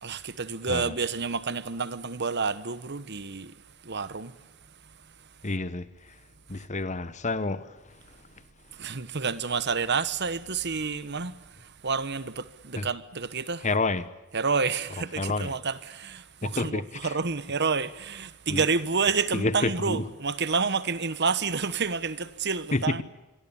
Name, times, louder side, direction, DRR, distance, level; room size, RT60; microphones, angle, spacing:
voice 1, 0.0-3.5 3.8-4.3 8.8-11.4 11.8-13.7 14.3-23.0, right 5 dB, 50° right, 1.2 m, -29 dB
voice 2, 5.4-6.2 6.5-8.2 12.7-12.9 13.6-14.1 15.0-15.5 16.4-17.2 18.5-18.6 19.3-20.1 22.7-23.0, left 2 dB, 30° left, 1.2 m, -29 dB
27.5 x 22.5 x 7.2 m
head